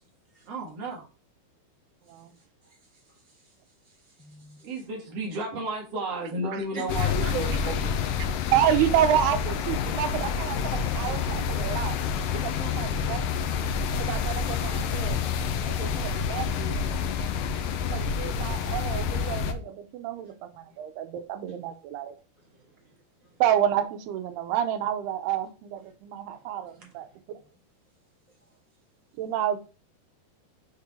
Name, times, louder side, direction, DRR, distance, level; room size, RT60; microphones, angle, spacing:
voice 1, 0.5-1.1 4.6-7.9 26.7-26.8, right 2 dB, 50° right, -1 dB, 2.2 m, -33 dB
voice 2, 2.0-4.8 6.7-8.1 8.5-8.6 9.6-10.2 21.5-21.6 27.4-27.6 28.3-28.6, right 2 dB, 10° left, -3 dB, 2.0 m, -47 dB
sound 1, 6.9-19.5, left 6 dB, 80° left, 2.0 m, -28 dB
voice 3, 8.5-11.9 12.3-13.5 14.0-15.2 15.7-16.8 17.9-22.1 23.4-27.1 29.2-29.6, right 10 dB, 90° right, 8 dB, 2.8 m, -29 dB
7.0 x 3.8 x 4.3 m, 0.33 s
omnidirectional pair, 4.5 m